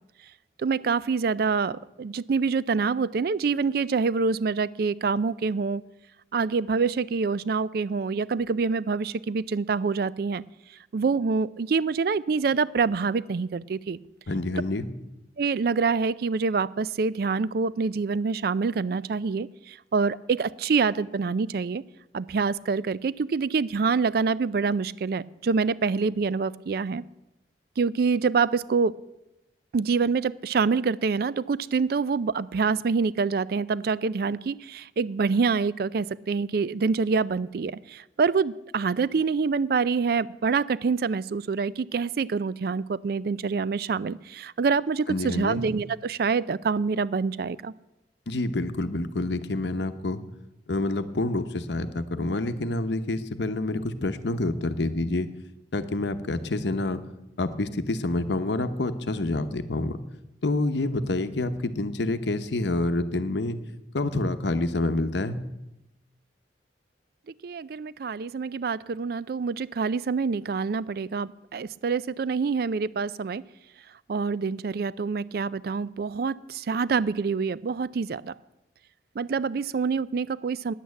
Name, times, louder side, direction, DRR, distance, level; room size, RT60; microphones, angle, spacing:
voice 1, 0.6-5.8 6.3-10.4 10.9-14.0 15.4-21.8 22.1-27.0 27.8-28.9 29.7-47.7 67.4-73.4 74.1-78.3 79.2-80.7, right 5 dB, 55° right, 19 dB, 0.4 m, -26 dB
voice 2, 14.3-14.9 45.1-45.6 48.3-50.2 50.7-55.3 55.7-57.0 57.4-60.0 60.4-63.6 63.9-65.4, left 2 dB, 75° left, 10 dB, 0.8 m, -27 dB
10.0 x 8.7 x 8.2 m, 0.92 s
head